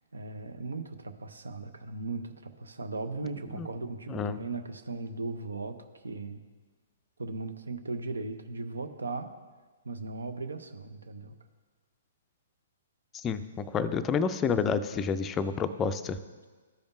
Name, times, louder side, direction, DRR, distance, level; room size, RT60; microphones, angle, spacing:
voice 1, 0.1-5.8 6.0-6.4 7.2-9.3 9.8-11.3, right 3 dB, 75° right, 9 dB, 0.6 m, -37 dB
voice 2, 4.1-4.4 13.2-16.2, left 6 dB, 20° left, 11 dB, 0.4 m, -29 dB
13.0 x 5.1 x 2.6 m, 1.4 s
figure-of-eight pair, 120°, 0 cm